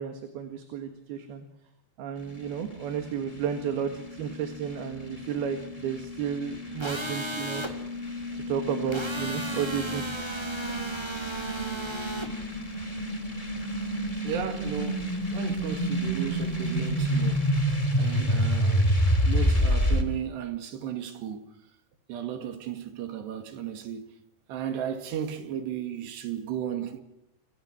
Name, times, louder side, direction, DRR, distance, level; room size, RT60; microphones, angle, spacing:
voice 1, 0.0-1.5 2.0-7.6 8.3-10.0, right 8 dB, 70° right, 3.6 m, -32 dB
sound 1, 2.2-20.0, equal, 15° left, 1.5 m, -29 dB
sound 2, 6.8-7.7 8.9-12.3, right 1 dB, 10° right, 1.6 m, -35 dB
voice 2, 14.2-17.5 18.0-18.9 19.3-21.4 22.1-24.1 24.5-27.0, right 9 dB, 90° right, 4.3 m, -34 dB
28.0 x 26.0 x 6.3 m
omnidirectional pair, 4.8 m